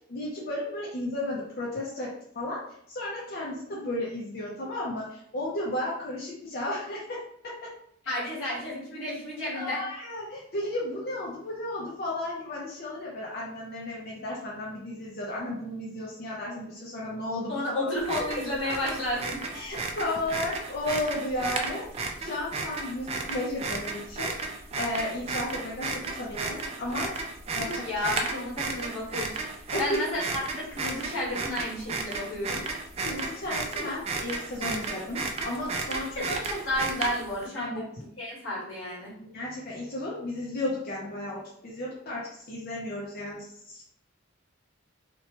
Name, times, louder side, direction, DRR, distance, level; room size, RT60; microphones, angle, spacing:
voice 1, 0.1-2.6 2.9-7.7 9.5-17.6 19.5-24.3 24.7-27.1 27.5-27.9 29.7-30.0 33.0-36.1 37.5-37.9 39.2-43.8, left 1 dB, 50° left, -4 dB, 0.5 m, -34 dB
voice 2, 8.0-9.8 17.5-19.4 27.6-29.4 29.8-30.2 30.5-32.6 36.1-37.9 38.2-39.2, left 1 dB, 85° left, -6 dB, 1.4 m, -32 dB
sound 1, 18.0-37.4, right 3 dB, 30° right, 0.3 m, -34 dB
2.9 x 2.1 x 2.8 m, 0.68 s
head